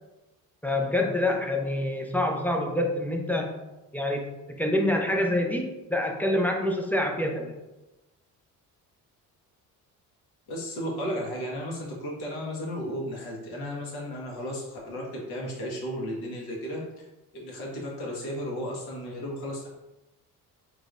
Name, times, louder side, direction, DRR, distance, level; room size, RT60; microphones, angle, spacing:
voice 1, 0.6-3.5 3.9-4.2 4.6-7.5, left 1 dB, 5° left, 2 dB, 0.6 m, -26 dB
voice 2, 10.5-17.0 17.3-19.7, equal, 60° left, -3 dB, 1.4 m, -34 dB
3.8 x 3.4 x 2.5 m, 1.0 s
hypercardioid pair, 55°, 42 cm